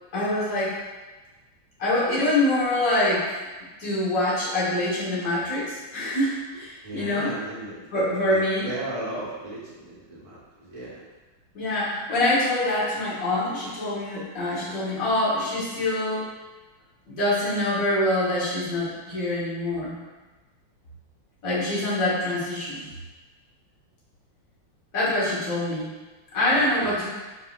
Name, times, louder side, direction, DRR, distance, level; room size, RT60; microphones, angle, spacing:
voice 1, 0.1-0.8 1.8-3.4 3.8-7.3 7.9-8.7 11.5-16.3 17.1-20.0 21.4-22.9 24.9-25.9 26.3-27.1, left 1 dB, 50° left, -9 dB, 1.6 m, -25 dB
voice 2, 6.8-10.9 26.5-27.0, right 1 dB, 25° right, -8 dB, 0.9 m, -36 dB
4.1 x 3.7 x 2.4 m, 1.2 s
omnidirectional pair, 2.2 m